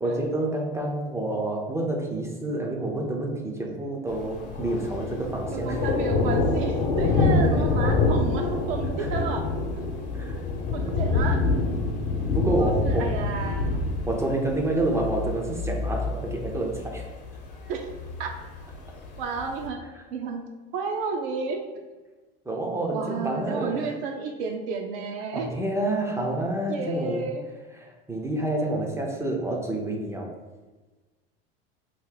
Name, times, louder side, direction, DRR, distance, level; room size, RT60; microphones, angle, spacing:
voice 1, 0.0-5.9 7.4-7.8 8.8-9.2 10.1-10.4 10.8-11.0 12.3-13.2 14.1-17.1 22.5-23.9 25.3-27.3 27.7-30.3, right 1 dB, 10° right, 0 dB, 0.5 m, -28 dB
Thunder, 4.1-19.7, left 3 dB, 60° left, 0.9 m, -26 dB
voice 2, 5.5-9.5 10.7-11.4 12.6-13.8 17.7-17.9 18.2-18.3 19.2-19.8 20.1-20.4 20.7-21.6 22.9-25.5 26.7-27.4, right 5 dB, 65° right, 3 dB, 0.6 m, -31 dB
2.9 x 2.6 x 3.8 m, 1.3 s
hypercardioid pair, 105°, 30 cm